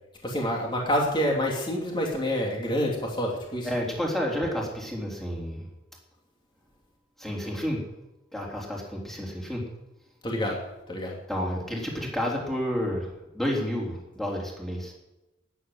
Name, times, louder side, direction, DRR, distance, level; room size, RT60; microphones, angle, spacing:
voice 1, 0.2-3.7 10.2-10.6 10.9-11.1, equal, 25° left, -1 dB, 2.8 m, -27 dB
voice 2, 3.6-5.7 7.2-7.8 8.3-9.6 11.3-14.9, equal, ahead, -2 dB, 3.6 m, -30 dB
13.5 x 9.8 x 7.9 m, 1.0 s
head